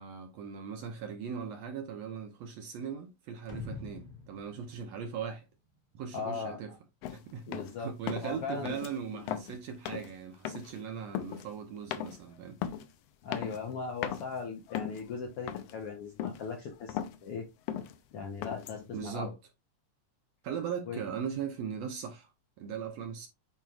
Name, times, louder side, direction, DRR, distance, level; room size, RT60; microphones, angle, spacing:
voice 1, 0.0-5.4 5.9-6.7 7.1-12.6 18.9-19.3 20.4-22.3 22.6-23.3, right 7 dB, 70° right, 1.7 m, -39 dB
sound 1, 3.5-6.0, left 3 dB, 20° left, 1.2 m, -46 dB
voice 2, 6.1-6.6 7.5-7.9 8.2-8.8 9.1-9.2 13.2-17.5 18.1-19.3 20.9-21.0, left 5 dB, 70° left, 1.4 m, -38 dB
sound 2, 7.0-7.2 7.5-7.8 8.1-8.4 8.7-8.9 9.2-9.6 9.9-10.1 10.5-10.8 11.1-11.5 11.9-12.2 12.6-12.9 13.3-13.8 14.0-14.3 14.7-15.1 15.5-15.9 16.2-16.5 16.7-17.2 17.7-18.0 18.4-18.8, left 10 dB, 90° left, 1.4 m, -37 dB
9.3 x 4.5 x 2.4 m
omnidirectional pair, 3.7 m